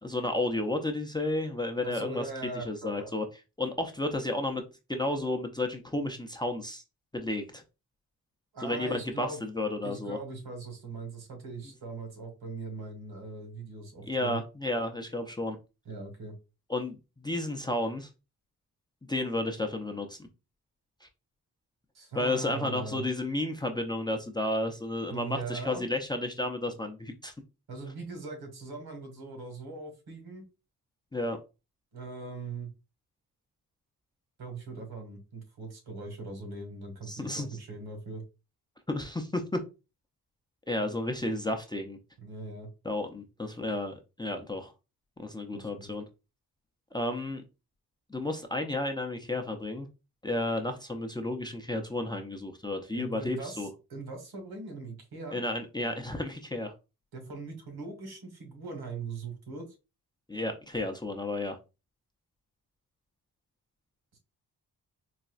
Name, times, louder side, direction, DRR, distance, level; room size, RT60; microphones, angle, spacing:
voice 1, 0.0-2.2 2.5-3.2 3.6-4.6 4.9-6.8 7.1-7.6 8.6-10.2 14.0-15.6 16.7-18.1 19.1-20.3 21.0-21.1 22.2-27.3 31.1-31.4 37.1-37.5 38.9-39.6 40.7-42.0 42.8-44.7 45.2-46.0 46.9-47.4 48.1-49.9 50.2-53.7 55.3-56.7 60.3-61.6, left 2 dB, 10° left, 4 dB, 0.5 m, -32 dB
voice 2, 1.8-3.1 8.5-9.4 9.8-14.4 15.8-16.3 21.9-23.0 25.1-25.8 27.7-30.4 31.9-32.7 34.4-38.2 42.2-42.7 45.5-45.9 52.9-55.4 57.1-59.7 64.1-64.2, right 3 dB, 75° right, 4 dB, 1.5 m, -40 dB
4.1 x 2.2 x 2.4 m, 0.29 s
cardioid pair, 85°, 38 cm